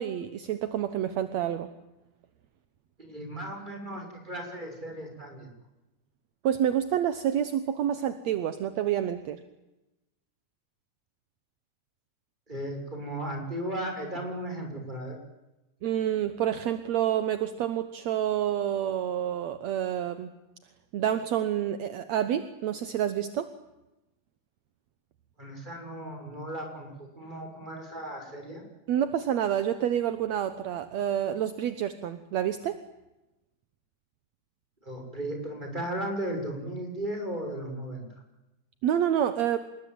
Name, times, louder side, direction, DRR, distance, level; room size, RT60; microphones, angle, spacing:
voice 1, 0.0-1.7 6.4-9.4 15.8-20.3 20.9-23.5 28.9-32.8 38.8-39.6, right 10 dB, 70° right, 10 dB, 2.3 m, -28 dB
voice 2, 3.0-5.5 12.5-15.2 25.4-28.6 34.8-38.1, right 1 dB, 15° right, 3 dB, 6.7 m, -36 dB
27.0 x 21.0 x 9.5 m, 0.98 s
omnidirectional pair, 3.4 m